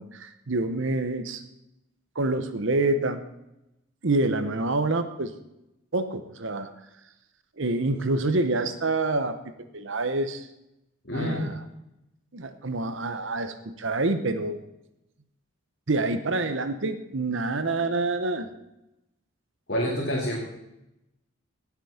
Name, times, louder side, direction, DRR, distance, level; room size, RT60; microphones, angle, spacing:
voice 1, 0.0-1.4 2.1-3.2 4.0-5.3 5.9-6.7 7.6-10.5 11.1-11.6 12.3-14.6 15.9-18.5, right 2 dB, 60° right, 10 dB, 0.9 m, -27 dB
voice 2, 19.7-20.4, equal, 50° left, -4 dB, 2.4 m, -27 dB
18.0 x 6.0 x 5.7 m, 0.89 s
head